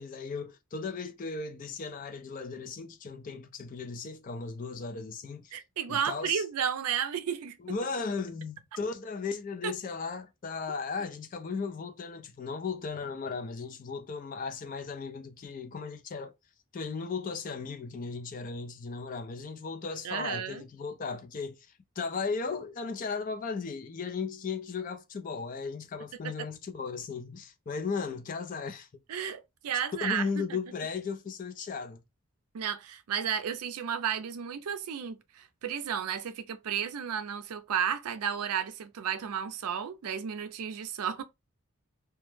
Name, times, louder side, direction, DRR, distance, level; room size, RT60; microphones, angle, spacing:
voice 1, 0.0-5.6 5.9-6.4 7.6-16.3 16.7-28.9 30.0-32.0, left 4 dB, 35° left, 0.3 m, -36 dB
voice 2, 5.5-7.6 9.6-9.7 20.0-20.6 26.2-26.3 29.1-30.6 32.5-41.2, right 8 dB, 85° right, 0.4 m, -33 dB
2.2 x 2.0 x 3.1 m
head